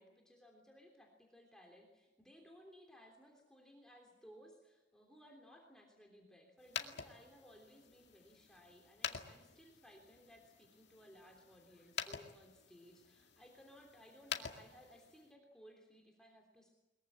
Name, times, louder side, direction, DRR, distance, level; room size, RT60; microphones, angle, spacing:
voice 1, 0.0-16.7, equal, 5° left, 0 dB, 3.2 m, -61 dB
sound 1, 6.6-15.3, left 7 dB, 60° left, 2.2 m, -48 dB
22.5 x 22.0 x 8.6 m, 1.1 s
head